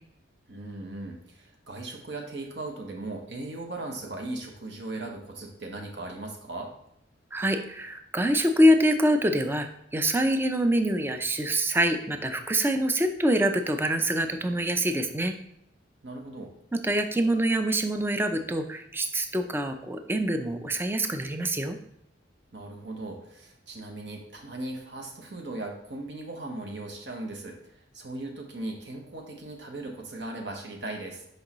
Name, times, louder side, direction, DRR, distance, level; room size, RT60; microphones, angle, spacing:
voice 1, 0.5-6.7 16.0-16.5 22.5-31.3, right 2 dB, 65° right, 1 dB, 1.0 m, -38 dB
voice 2, 7.3-15.3 16.7-21.8, right 1 dB, 10° right, 7 dB, 0.4 m, -25 dB
6.3 x 5.3 x 3.0 m, 0.77 s
head